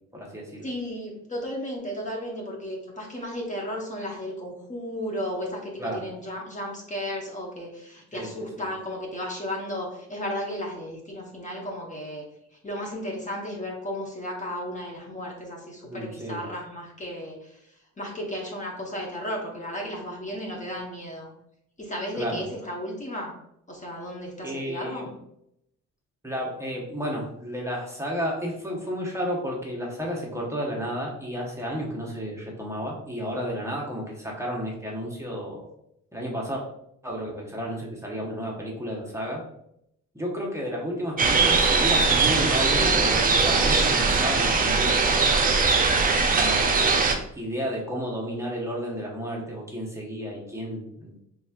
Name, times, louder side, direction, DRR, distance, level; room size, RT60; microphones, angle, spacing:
voice 1, 0.1-0.7 5.8-6.0 8.1-8.5 15.9-16.4 22.1-22.4 24.4-25.1 26.2-35.7 36.1-36.6 37.0-39.4 40.1-45.6 46.3-47.0 47.4-51.2, equal, 10° right, -3 dB, 0.9 m, -32 dB
voice 2, 0.6-12.2 12.6-17.5 18.0-21.3 21.8-23.4 23.7-25.1, equal, 25° left, -1 dB, 1.0 m, -34 dB
sound 1, 41.2-47.1, right 4 dB, 30° right, 0.6 m, -21 dB
4.1 x 3.4 x 2.3 m, 0.76 s
cardioid pair, 90°, 30 cm